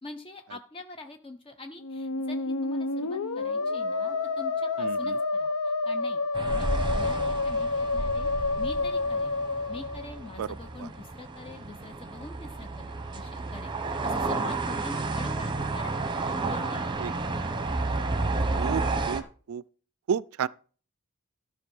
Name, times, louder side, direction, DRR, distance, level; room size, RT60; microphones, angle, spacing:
voice 1, 0.0-6.2 6.5-8.3 8.6-9.3 9.7-15.9 16.2-17.0, left 3 dB, 25° left, 0.6 m, -44 dB
Musical instrument, 1.8-10.6, left 3 dB, 80° left, 0.8 m, -29 dB
voice 2, 4.8-5.1 10.4-10.5 17.0-17.1 18.6-18.8 19.1-19.2 19.5-19.6 20.1-20.5, right 7 dB, 65° right, 0.4 m, -30 dB
sound 1, 6.3-19.2, right 3 dB, 20° right, 0.9 m, -31 dB
13.0 x 5.2 x 5.3 m
head